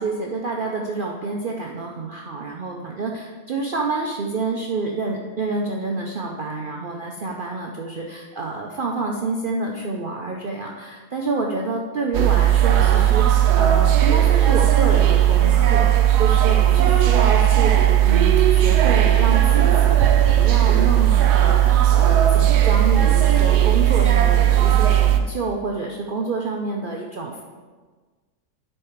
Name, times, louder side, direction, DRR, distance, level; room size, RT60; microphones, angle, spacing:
voice 1, 0.0-27.4, right 3 dB, 60° right, 0 dB, 0.5 m, -28 dB
sound 1, 12.1-25.2, right 11 dB, 80° right, 1.2 m, -16 dB
10.0 x 4.4 x 4.5 m, 1.4 s
omnidirectional pair, 1.7 m